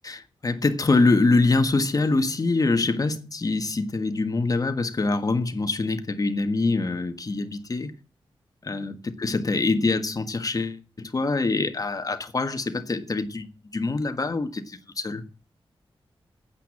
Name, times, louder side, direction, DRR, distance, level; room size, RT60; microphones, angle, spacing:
voice 1, 0.4-7.9 8.6-13.5 13.7-15.2, left 3 dB, 40° left, 1.6 m, -24 dB
9.3 x 8.4 x 8.6 m
wide cardioid pair, 115°, 10 cm